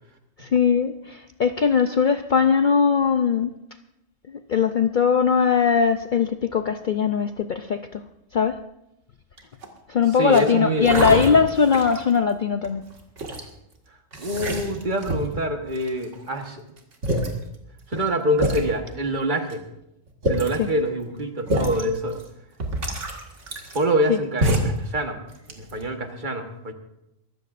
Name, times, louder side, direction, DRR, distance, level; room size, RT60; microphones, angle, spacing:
voice 1, 0.4-3.5 4.3-8.0 8.3-8.6 9.9-12.9 20.6-20.7 24.1-24.2, left 6 dB, 50° left, 8 dB, 0.6 m, -20 dB
sound 1, 9.4-9.8 10.3-10.4 10.8-12.1 12.6-13.4 14.1-15.4 15.8-16.3 16.8-16.9 17.0-17.3 18.0-18.1 18.4-18.6 19.5-19.6 20.1-20.6 21.5-21.8 22.2-22.3 22.6-24.1 24.4-24.8 25.3-25.9, right 1 dB, 70° right, 2.2 m, -26 dB
voice 2, 10.2-11.4 14.2-16.6 17.9-19.6 20.3-22.2 23.7-25.2 25.5-26.7, right 1 dB, 40° right, 4 dB, 1.5 m, -25 dB
23.0 x 14.0 x 2.5 m, 0.84 s
omnidirectional pair, 1.3 m